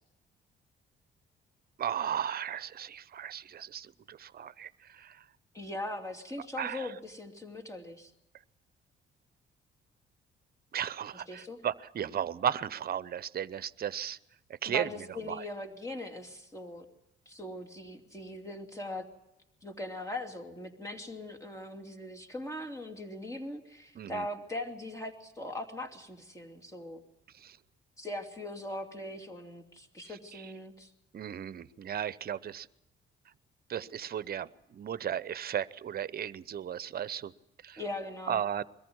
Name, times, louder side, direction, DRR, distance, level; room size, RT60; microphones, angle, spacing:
voice 1, 1.8-5.2 6.6-6.9 10.7-14.2 14.6-14.9 15.3-15.4 24.0-24.3 27.4-27.6 30.3-30.4 31.1-32.7 33.7-37.3 37.6-37.8 38.3-38.6, right 9 dB, 50° right, 17 dB, 0.8 m, -35 dB
voice 2, 5.5-8.1 11.1-11.6 14.7-16.8 17.3-19.1 19.6-27.0 28.0-30.9 37.8-38.4, left 1 dB, 15° left, 3 dB, 2.8 m, -40 dB
22.0 x 14.5 x 9.5 m, 0.90 s
cardioid pair, 90°, 20 cm